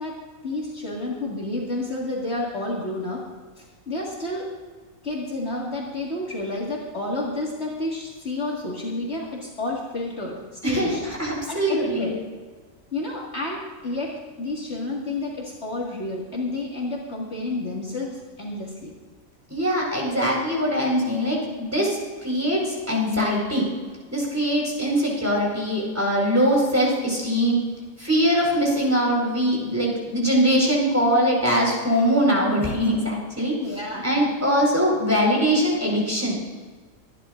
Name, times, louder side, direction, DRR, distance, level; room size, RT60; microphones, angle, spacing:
voice 1, 0.0-3.2 3.6-4.5 5.0-10.4 10.7-11.0 11.5-12.1 12.9-19.0 33.6-34.3, left 2 dB, 50° left, -4 dB, 2.3 m, -30 dB
voice 2, 10.6-12.1 19.5-23.7 24.1-27.6 28.0-33.6 34.0-36.4, equal, 10° right, -3 dB, 4.6 m, -22 dB
25.5 x 11.5 x 2.6 m, 1.4 s
omnidirectional pair, 1.4 m